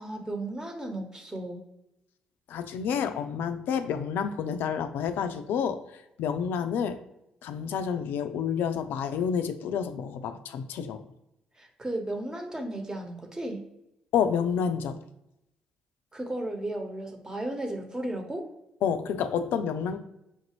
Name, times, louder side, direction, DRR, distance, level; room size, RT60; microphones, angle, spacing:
voice 1, 0.0-1.6 11.5-13.6 16.1-18.5, right 1 dB, 20° right, 3 dB, 1.1 m, -34 dB
voice 2, 2.5-5.8 6.2-7.0 7.4-11.0 14.1-15.0 18.8-20.0, left 7 dB, 70° left, 10 dB, 0.4 m, -29 dB
5.7 x 2.6 x 3.0 m, 0.86 s
hypercardioid pair, 45°, 4 cm